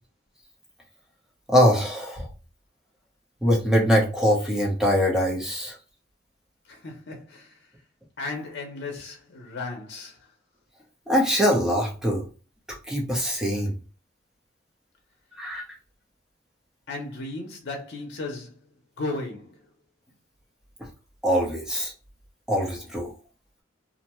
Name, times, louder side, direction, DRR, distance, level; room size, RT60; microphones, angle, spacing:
voice 1, 1.5-2.3 3.4-5.8 11.1-12.2 12.9-13.7 15.4-15.6 21.2-21.9 22.5-23.1, equal, 5° right, 0.7 m, -22 dB
voice 2, 6.7-7.6 8.2-10.3 16.9-18.6 19.0-19.6, left 3 dB, 60° left, 0.7 m, -35 dB
2.6 x 2.2 x 2.9 m
head